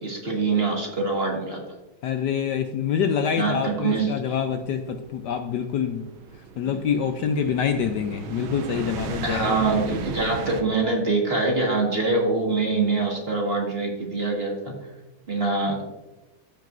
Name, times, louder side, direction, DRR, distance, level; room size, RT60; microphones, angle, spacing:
voice 1, 0.0-1.6 3.4-4.1 9.2-14.7 15.3-15.8, right 3 dB, 30° right, -1 dB, 1.8 m, -24 dB
voice 2, 2.0-6.1 6.4-9.6, left 7 dB, 70° left, 7 dB, 1.1 m, -26 dB
sound 1, 3.9-10.6, right 6 dB, 90° right, 1.6 m, -37 dB
14.5 x 6.2 x 2.6 m, 1.1 s
omnidirectional pair, 2.2 m